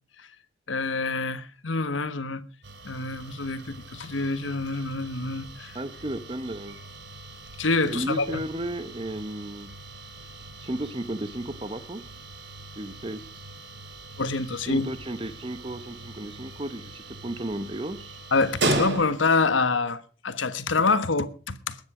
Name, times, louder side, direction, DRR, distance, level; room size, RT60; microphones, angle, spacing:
voice 1, 0.7-2.4 2.8-5.7 7.6-8.4 14.2-14.9 18.3-21.8, left 3 dB, 90° left, 1.3 m, -26 dB
sound 1, 2.6-19.5, right 2 dB, 65° right, 3.1 m, -37 dB
voice 2, 5.7-6.8 7.9-9.7 10.6-12.0 12.8-13.5 14.6-18.2, right 1 dB, 25° right, 0.9 m, -34 dB
20.5 x 9.5 x 4.9 m
head